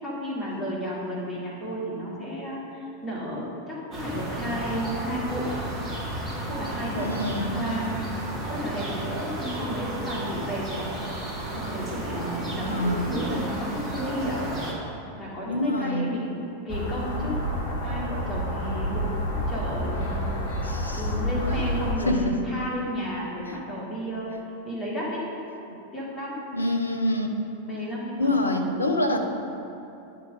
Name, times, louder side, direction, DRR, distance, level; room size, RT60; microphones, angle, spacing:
voice 1, 0.0-5.5 6.5-8.0 8.5-10.9 11.5-14.4 15.2-17.4 17.8-20.4 20.7-25.2 25.9-26.4 27.6-29.2, equal, 20° left, -5 dB, 2.0 m, -33 dB
sound 1, 3.9-14.7, right 1 dB, 15° right, 1.7 m, -33 dB
voice 2, 6.9-7.5 12.6-13.3 15.5-16.1 20.6-21.0 22.1-22.4 26.5-27.3 28.2-29.2, left 1 dB, 80° left, 4 dB, 0.7 m, -26 dB
sound 2, 16.7-21.9, equal, 55° left, 1.5 m, -29 dB
9.6 x 3.9 x 6.4 m, 2.9 s
figure-of-eight pair, 90°, 0 cm